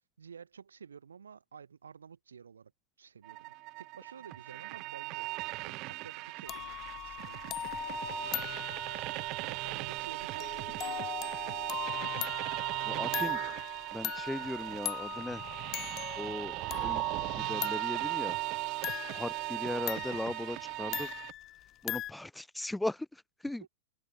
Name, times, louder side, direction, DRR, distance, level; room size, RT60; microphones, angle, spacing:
voice 1, 0.2-2.7 3.0-12.4 23.6-23.7, right 6 dB, 85° right, 4.1 m, -52 dB
sound 1, 3.2-21.3, right 23 dB, 45° right, 1.3 m, -37 dB
sound 2, 6.5-22.1, left 14 dB, 35° left, 1.5 m, -41 dB
voice 2, 12.9-13.4 13.9-15.4 16.2-16.6 16.8-17.0 17.4-18.4 19.1-21.1 21.8-23.0 23.4-23.6, left 1 dB, 5° left, 0.3 m, -37 dB
hypercardioid pair, 110°, 0 cm